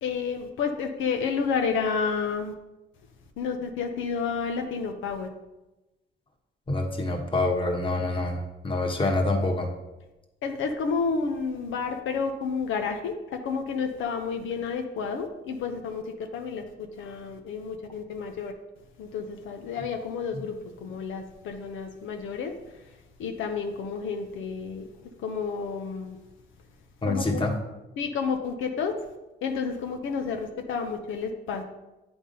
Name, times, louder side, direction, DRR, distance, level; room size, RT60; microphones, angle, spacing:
voice 1, 0.0-2.5 3.4-5.3 10.4-16.0 16.3-16.6 17.0-18.5 19.0-20.5 20.8-22.5 23.2-24.9 25.2-26.2 27.1-27.5 28.0-28.9 29.4-31.6, left 5 dB, 80° left, 4 dB, 0.8 m, -30 dB
voice 2, 6.7-9.7 27.0-27.5, left 2 dB, 25° left, 2 dB, 1.3 m, -26 dB
8.6 x 3.6 x 5.4 m, 1.0 s
cardioid pair, 90°, 20 cm